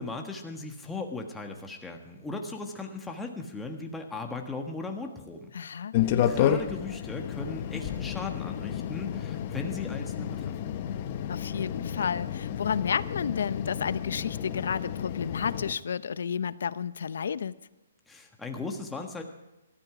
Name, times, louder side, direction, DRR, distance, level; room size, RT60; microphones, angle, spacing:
voice 1, 0.0-5.5 6.2-10.5 18.1-19.2, left 3 dB, 5° left, 2 dB, 1.4 m, -37 dB
voice 2, 5.5-6.0 11.3-17.5, left 7 dB, 70° left, 17 dB, 0.6 m, -31 dB
sound 1, 5.9-15.7, left 10 dB, 35° left, 0.8 m, -31 dB
19.0 x 13.0 x 5.0 m, 0.99 s
hypercardioid pair, 155°, 0 cm